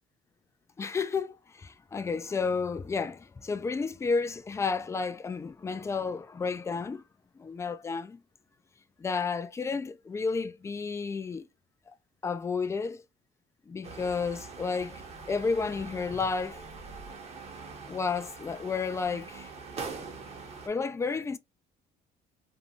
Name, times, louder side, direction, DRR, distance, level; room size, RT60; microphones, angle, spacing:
voice 1, 0.8-7.0 7.4-8.2 9.0-11.5 12.2-13.0 13.7-15.0 15.3-16.6 17.9-19.5 20.7-21.4, left 4 dB, 15° left, 0.3 m, -31 dB
sound 1, 13.8-20.7, right 4 dB, 40° right, 0.9 m, -43 dB
2.6 x 2.2 x 2.8 m
cardioid pair, 110°, 17 cm